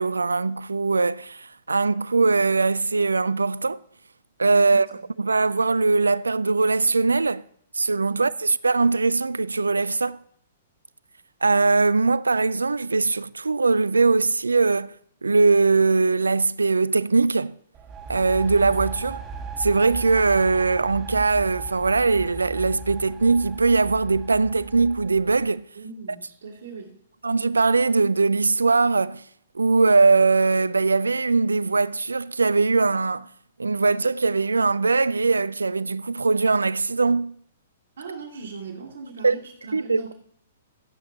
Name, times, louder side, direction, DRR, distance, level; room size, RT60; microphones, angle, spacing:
voice 1, 0.0-3.8 4.4-7.4 7.7-10.2 11.4-14.9 15.2-17.5 18.1-19.2 19.6-25.6 27.2-29.2 29.6-33.3 33.6-37.4 39.2-39.4 39.7-40.0, right 3 dB, 85° right, 0.3 m, -21 dB
sound 1, 17.7-25.5, right 5 dB, 25° right, 1.2 m, -38 dB
voice 2, 25.7-27.0 38.0-40.1, right 4 dB, 70° right, 2.5 m, -39 dB
15.0 x 8.5 x 2.8 m
figure-of-eight pair, 120°, 0 cm